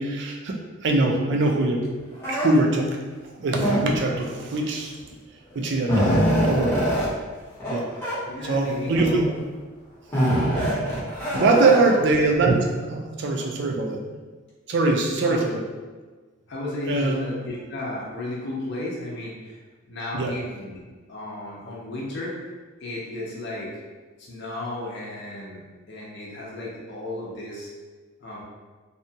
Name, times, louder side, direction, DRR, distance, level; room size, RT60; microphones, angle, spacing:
voice 1, 0.0-1.9 2.3-3.0 3.4-4.9 5.5-7.0 7.7-7.9 8.4-9.2 10.3-11.0 11.3-14.0 14.7-15.6 16.9-17.2 20.1-20.3, right 2 dB, 55° right, 1 dB, 0.4 m, -23 dB
sound 1, 2.2-2.5 3.6-4.1 5.1-5.2 5.5-7.1 7.6-7.8 8.0-8.1 8.8-9.3 10.1-12.0, equal, 10° left, 0.7 m, -23 dB
voice 2, 8.2-9.1 11.6-11.9 15.2-15.4 16.5-20.8 21.1-22.4 22.8-23.7 24.2-27.7 28.2-28.4, left 1 dB, 55° left, -5 dB, 0.5 m, -34 dB
2.7 x 2.2 x 2.7 m, 1.4 s
head